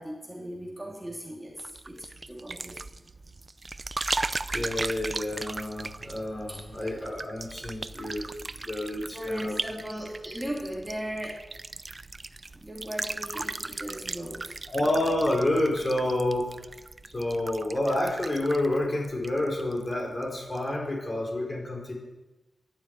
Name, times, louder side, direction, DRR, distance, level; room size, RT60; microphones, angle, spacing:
voice 1, 0.0-2.8 6.5-6.9 9.0-11.4 12.5-14.6, equal, 10° right, -2 dB, 3.0 m, -37 dB
sound 1, 1.6-19.9 20.2-20.6, right 3 dB, 35° right, 0.6 m, -37 dB
voice 2, 4.5-8.3 8.6-9.6 14.7-16.5 17.1-21.9, left 1 dB, 35° left, -1 dB, 5.3 m, -29 dB
12.0 x 12.0 x 9.4 m, 1.1 s
wide cardioid pair, 115°, 0 cm